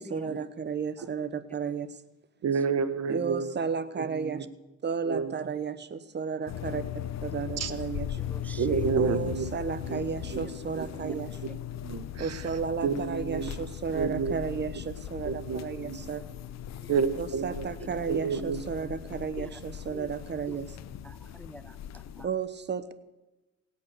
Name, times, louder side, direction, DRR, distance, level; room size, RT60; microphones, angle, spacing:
voice 1, 0.0-2.0 3.1-4.4 4.8-6.8 7.2-8.2 9.0-11.4 12.2-16.2 17.2-20.8 22.2-22.9, right 6 dB, 35° right, 13 dB, 1.0 m, -33 dB
voice 2, 2.4-3.5 4.0-4.4 5.1-5.3 7.6-7.7 8.6-9.5 9.9-10.0 10.3-10.4 10.7-11.1 11.4-11.5 11.8-12.4 12.8-13.7 13.9-14.4 15.2-16.0 16.9-18.9, right 6 dB, 55° right, 12 dB, 1.2 m, -30 dB
sound 1, 6.5-22.3, left 10 dB, 60° left, 0.7 m, -38 dB
voice 3, 8.2-8.8 16.8-16.9 19.4-19.5 19.9-20.1 21.0-22.3, equal, 5° left, 15 dB, 0.4 m, -46 dB
17.0 x 8.5 x 6.7 m, 1.1 s
cardioid pair, 90°, 30 cm